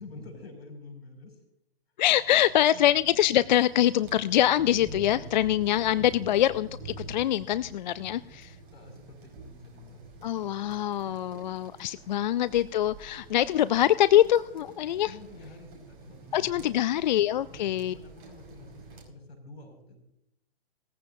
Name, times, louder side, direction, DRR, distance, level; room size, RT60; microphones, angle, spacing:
voice 1, 0.0-1.4 2.7-2.8 8.7-11.3 15.0-16.7 17.5-20.0, left 3 dB, 75° left, 4 dB, 5.8 m, -48 dB
voice 2, 2.0-8.5 10.2-15.1 16.3-17.9, left 12 dB, 45° left, 16 dB, 0.4 m, -24 dB
sound 1, 2.1-19.1, right 3 dB, 30° right, 5.1 m, -47 dB
19.0 x 15.0 x 2.6 m, 0.83 s
hypercardioid pair, 130°, 32 cm